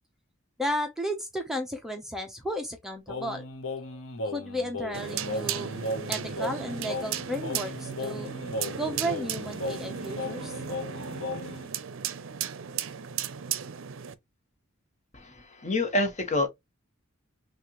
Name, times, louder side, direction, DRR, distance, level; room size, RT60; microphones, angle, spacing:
voice 1, 0.6-3.5 4.2-5.7 6.1-8.3 8.8-10.5, equal, ahead, 0.7 m, -33 dB
Singing, 3.1-11.7, left 2 dB, 80° left, 0.9 m, -36 dB
sound 1, 4.9-14.1, right 8 dB, 65° right, 0.6 m, -35 dB
voice 2, 15.1-16.5, left 2 dB, 35° left, 1.1 m, -27 dB
6.2 x 2.5 x 3.0 m
head